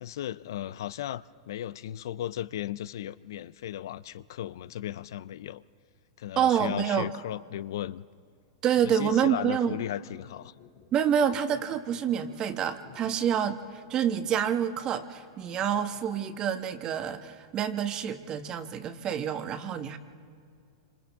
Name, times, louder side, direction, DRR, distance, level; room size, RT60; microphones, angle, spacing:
voice 1, 0.0-5.6 6.2-8.0 8.9-10.5, left 12 dB, 70° left, 0.4 m, -36 dB
voice 2, 6.4-7.1 8.6-9.8 10.9-20.0, right 8 dB, 35° right, 1.2 m, -27 dB
sound 1, 9.6-16.2, left 10 dB, 55° left, 4.8 m, -55 dB
28.0 x 26.0 x 3.6 m
hypercardioid pair, 105°, 2 cm